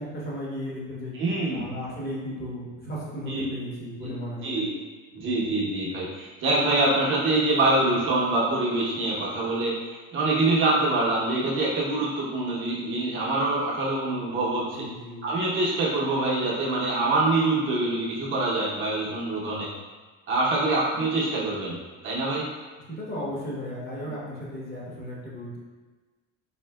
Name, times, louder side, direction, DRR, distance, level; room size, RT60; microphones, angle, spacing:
voice 1, 0.0-1.1 1.5-4.7 14.7-15.3 22.9-25.6, equal, 30° left, -6 dB, 1.2 m, -35 dB
voice 2, 1.1-1.7 3.3-3.4 4.0-4.1 4.4-4.8 5.1-14.9 15.2-19.7 20.3-22.5, right 2 dB, 40° right, -5 dB, 0.8 m, -25 dB
4.3 x 2.6 x 2.2 m, 1.3 s
cardioid pair, 130°, 32 cm